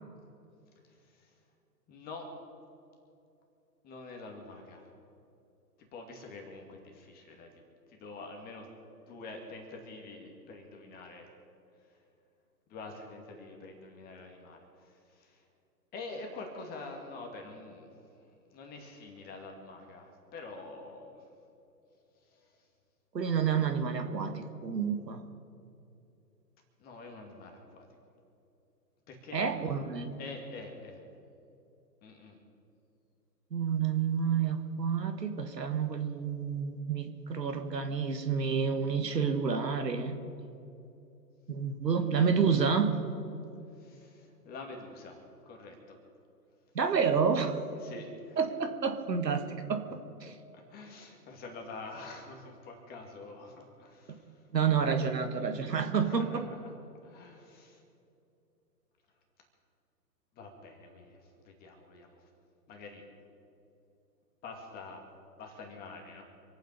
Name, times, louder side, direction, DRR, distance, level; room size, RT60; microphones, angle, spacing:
voice 1, 0.8-1.3 1.9-2.3 3.8-4.9 5.8-7.6 7.9-8.7 9.1-11.3 11.9-12.0 12.7-15.5 15.9-18.2 18.5-21.3 22.3-22.6 26.8-27.9 29.1-29.7 30.2-31.0 32.0-32.4 41.9-42.6 43.7-46.0 47.8-48.4 50.5-54.5 55.8-56.8 57.0-57.8 60.4-62.3 62.7-63.0 64.4-65.0 65.4-66.2, left 3 dB, 20° left, 2 dB, 2.2 m, -47 dB
voice 2, 23.1-25.2 29.3-30.2 33.5-40.2 41.5-43.0 46.7-47.6 48.4-50.4 54.1-54.2 54.5-56.4, right 6 dB, 75° right, 6 dB, 2.0 m, -29 dB
27.0 x 9.2 x 5.4 m, 2.7 s
figure-of-eight pair, 135°, 49 cm